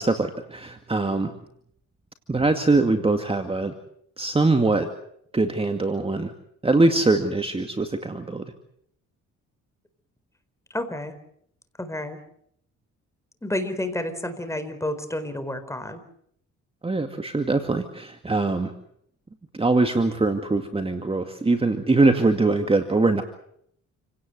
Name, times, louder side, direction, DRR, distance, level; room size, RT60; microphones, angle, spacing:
voice 1, 0.0-1.3 2.3-3.7 4.2-4.9 5.3-6.3 6.6-8.5 16.8-18.7 19.5-23.2, right 3 dB, 20° right, 6 dB, 2.2 m, -22 dB
voice 2, 10.7-11.1 11.8-12.2 13.4-16.0, left 1 dB, 10° left, 10 dB, 4.4 m, -30 dB
28.5 x 18.0 x 8.1 m, 0.70 s
cardioid pair, 90°, 30 cm